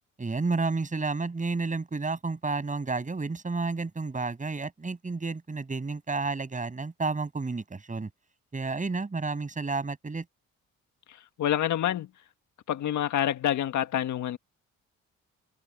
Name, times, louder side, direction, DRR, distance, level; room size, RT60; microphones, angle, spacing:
voice 1, 0.2-8.1 8.5-10.2, right 3 dB, 25° right, 7.8 m, -31 dB
voice 2, 11.1-12.1 12.7-14.4, left 11 dB, 70° left, 1.6 m, -27 dB
cardioid pair, 90°, 30 cm